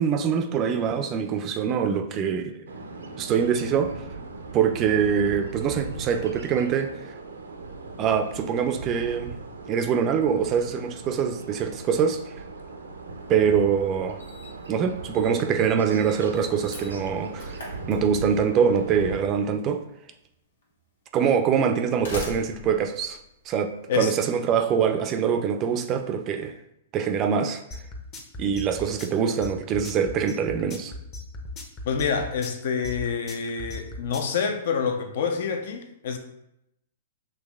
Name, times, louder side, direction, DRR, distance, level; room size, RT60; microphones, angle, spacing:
voice 1, 0.0-2.6 3.2-3.9 4.5-6.9 8.0-9.4 9.7-12.3 13.3-14.2 14.7-19.8 21.1-23.2 23.5-26.5 26.9-27.6 28.4-30.9, right 7 dB, 35° right, 6 dB, 0.4 m, -24 dB
sound 1, 2.7-19.2, right 3 dB, 85° right, 0.5 m, -38 dB
Slam, 13.4-13.5 14.2-14.7 14.9-15.3 15.6-18.5 19.6-19.7 20.6-20.7 21.6-24.0, left 2 dB, 75° left, 1.2 m, -40 dB
sound 2, 27.7-34.4, left 2 dB, 30° left, 0.8 m, -37 dB
voice 2, 31.8-36.2, left 6 dB, 60° left, 6 dB, 0.5 m, -27 dB
5.3 x 3.2 x 2.3 m, 0.81 s
hypercardioid pair, 110°, 0 cm